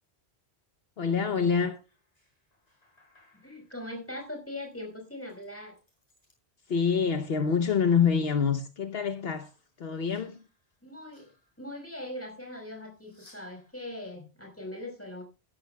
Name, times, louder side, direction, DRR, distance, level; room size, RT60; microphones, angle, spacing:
voice 1, 1.0-1.8 6.7-9.5 9.8-10.4, left 6 dB, 70° left, 1.1 m, -26 dB
sound 1, 1.9-6.4 6.7-8.0 8.4-12.0 12.9-13.7, left 1 dB, 40° left, 6.7 m, -65 dB
voice 2, 3.3-5.8 10.8-11.3 11.6-15.2, left 1 dB, 10° left, 5.2 m, -41 dB
15.0 x 13.5 x 2.2 m
omnidirectional pair, 1.1 m